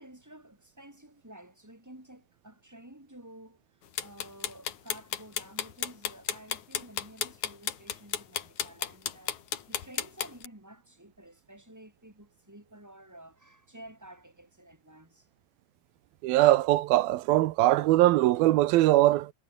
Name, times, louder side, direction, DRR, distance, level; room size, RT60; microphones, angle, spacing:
voice 1, 0.0-15.3, right 1 dB, 5° right, 5.8 m, -51 dB
sound 1, 4.0-10.5, left 9 dB, 60° left, 3.0 m, -33 dB
voice 2, 16.2-19.3, right 16 dB, 85° right, 2.7 m, -21 dB
omnidirectional pair, 4.2 m